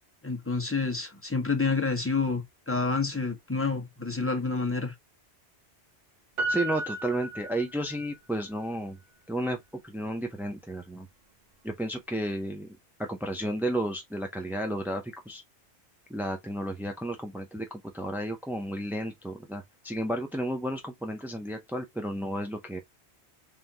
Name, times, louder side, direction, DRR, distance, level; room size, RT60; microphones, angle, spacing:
voice 1, 0.2-4.9, left 4 dB, 15° left, 0.9 m, -28 dB
Piano, 6.4-8.2 8.5-8.6, right 2 dB, 45° right, 1.1 m, -33 dB
voice 2, 6.5-9.0 9.3-11.1 11.6-15.4 16.1-22.8, right 1 dB, 5° right, 0.3 m, -32 dB
3.6 x 3.5 x 2.8 m
omnidirectional pair, 1.1 m